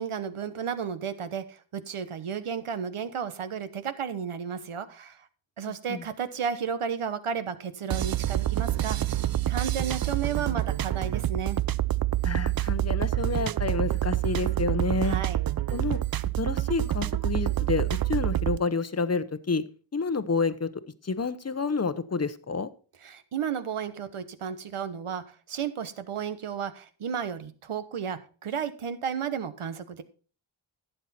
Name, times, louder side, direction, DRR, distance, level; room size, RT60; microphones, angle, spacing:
voice 1, 0.0-5.3 5.6-9.0 9.5-11.6 15.0-15.4 23.0-30.0, right 7 dB, 80° right, 12 dB, 1.1 m, -33 dB
voice 2, 5.7-6.0 12.2-15.2 15.7-16.0 16.4-19.6 19.9-20.7 21.0-22.7, left 4 dB, 30° left, 14 dB, 0.9 m, -29 dB
sound 1, 7.9-18.6, right 14 dB, 45° right, 0.5 m, -27 dB
12.0 x 8.0 x 4.2 m, 0.39 s
cardioid pair, 45°, 50 cm